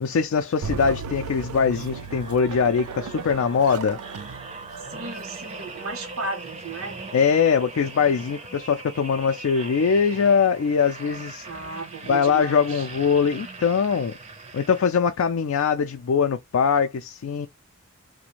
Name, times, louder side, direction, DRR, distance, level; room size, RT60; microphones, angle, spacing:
voice 1, 0.0-4.0 7.1-11.4 12.1-14.1 14.5-17.5, left 6 dB, 70° left, 0.4 m, -22 dB
sound 1, 0.6-6.1, right 5 dB, 90° right, 0.4 m, -36 dB
sound 2, 1.7-15.2 15.8-16.0, right 3 dB, 30° right, 0.5 m, -41 dB
voice 2, 4.9-7.0 11.4-12.9, right 3 dB, 70° right, 0.8 m, -34 dB
2.5 x 2.1 x 2.9 m
head